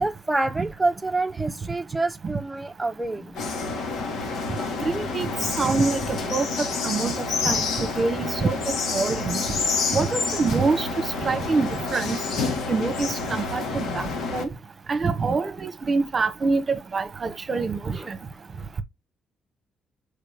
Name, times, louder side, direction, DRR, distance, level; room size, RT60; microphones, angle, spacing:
voice 1, 0.0-3.4 17.9-18.1, right 2 dB, 10° right, 1.0 m, -27 dB
sound 1, 3.3-14.4, left 4 dB, 75° left, 2.0 m, -28 dB
voice 2, 4.8-5.3 5.6-6.5 6.8-8.5 8.9-9.4 9.9-10.9 11.2-12.2 12.7-14.0 14.3-14.5 14.9-18.1, right 4 dB, 35° right, 1.2 m, -25 dB
6.6 x 5.0 x 3.6 m
cardioid pair, 90°, 0 cm